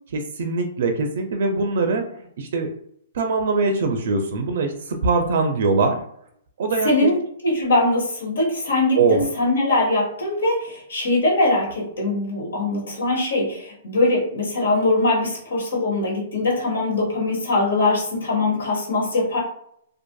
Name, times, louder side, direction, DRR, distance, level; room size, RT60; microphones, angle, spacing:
voice 1, 0.1-2.7 3.1-6.0 6.6-7.1 8.9-9.2, right 4 dB, 65° right, 5 dB, 0.4 m, -22 dB
voice 2, 6.8-7.2 7.4-19.4, left 2 dB, 90° left, -3 dB, 1.4 m, -22 dB
2.5 x 2.4 x 2.2 m, 0.69 s
hypercardioid pair, 145°, 0 cm